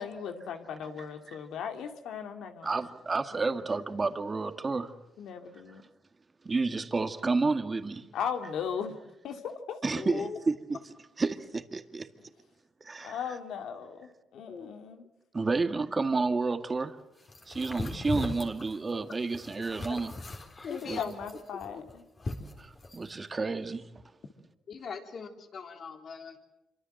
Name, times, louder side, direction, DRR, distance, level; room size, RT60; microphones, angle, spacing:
voice 1, 0.0-2.8 3.4-3.6 5.2-5.8 8.1-9.0 9.2-10.0 13.0-15.0 20.7-22.0, left 7 dB, 80° left, 2.5 m, -37 dB
voice 2, 2.6-4.9 6.4-8.0 9.8-10.8 11.2-12.1 12.8-13.2 15.3-17.0 17.5-20.1 20.9-21.0 22.6-23.8, right 3 dB, 30° right, 2.0 m, -30 dB
voice 3, 10.0-10.4 14.4-14.7 19.9-20.0 20.6-21.1 21.7-21.8 24.7-26.4, left 6 dB, 55° left, 3.7 m, -40 dB
sound 1, 17.3-23.1, left 2 dB, 30° left, 3.8 m, -39 dB
26.5 x 24.5 x 7.9 m
cardioid pair, 90°, 0 cm